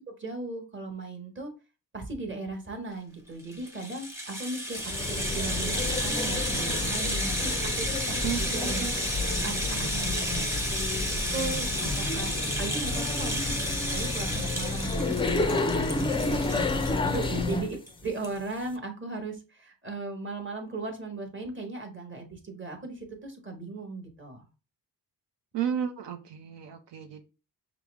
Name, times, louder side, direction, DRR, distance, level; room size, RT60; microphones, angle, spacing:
voice 1, 0.0-1.5 1.9-8.9 9.4-10.3 11.3-12.3 12.6-13.6 13.9-15.7 15.9-16.7 17.0-24.4, right 3 dB, 30° right, 1.2 m, -37 dB
Rattle (instrument), 3.4-17.5 17.9-18.0 18.2-18.4, equal, 5° right, 0.8 m, -32 dB
sound 1, 4.8-17.7, left 3 dB, 15° left, 0.3 m, -30 dB
voice 2, 8.2-8.9 9.7-10.5 25.5-27.2, right 9 dB, 85° right, 0.6 m, -34 dB
5.7 x 2.0 x 3.4 m
cardioid pair, 100°, 41 cm